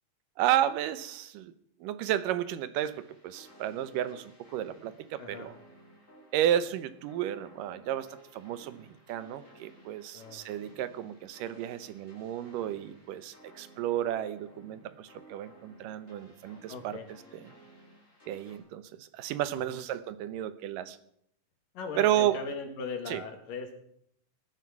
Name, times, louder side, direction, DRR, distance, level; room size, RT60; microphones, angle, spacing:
voice 1, 0.4-1.5 1.8-5.5 6.3-17.0 18.3-21.0 22.0-22.4 23.1-23.2, right 11 dB, 80° right, 13 dB, 2.5 m, -32 dB
sound 1, 2.7-18.6, right 1 dB, 20° left, 5.8 m, -57 dB
voice 2, 10.1-10.5 16.7-17.1 19.5-19.8 21.7-23.7, left 4 dB, 80° left, 4 dB, 3.8 m, -39 dB
19.0 x 11.0 x 5.9 m, 0.71 s
omnidirectional pair, 3.8 m